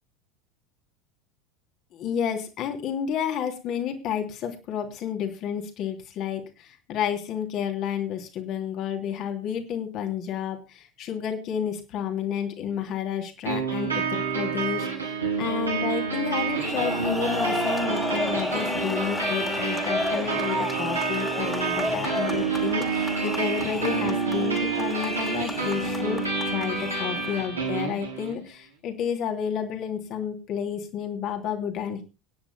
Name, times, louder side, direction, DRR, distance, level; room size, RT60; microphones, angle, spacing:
voice 1, 1.9-32.0, left 8 dB, 45° left, 5 dB, 3.1 m, -31 dB
sound 1, 13.4-28.4, right 5 dB, 80° right, 5.4 m, -28 dB
sound 2, 16.4-27.5, left 2 dB, 10° left, 2.8 m, -32 dB
25.5 x 10.0 x 2.2 m, 0.28 s
figure-of-eight pair, 75°, 0 cm